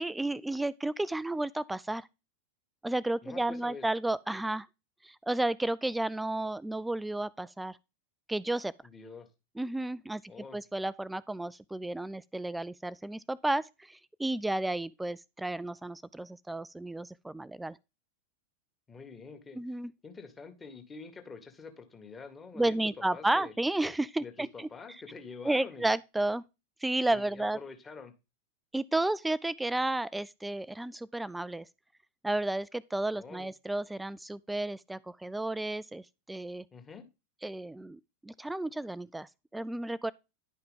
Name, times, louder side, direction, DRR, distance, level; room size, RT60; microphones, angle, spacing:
voice 1, 0.0-2.1 2.8-4.7 5.0-7.8 8.3-8.7 9.6-10.2 10.5-17.8 19.6-19.9 22.5-24.7 25.4-26.4 26.8-27.6 28.7-31.6 32.2-36.6 37.4-40.1, right 2 dB, 5° right, 0.3 m, -32 dB
voice 2, 3.2-3.8 8.8-9.3 10.3-10.6 18.9-19.6 20.0-22.8 23.1-23.5 24.2-25.9 27.1-28.1 33.2-33.5 36.7-37.1, left 5 dB, 15° left, 1.9 m, -46 dB
11.0 x 5.7 x 3.7 m
figure-of-eight pair, 90°, 0 cm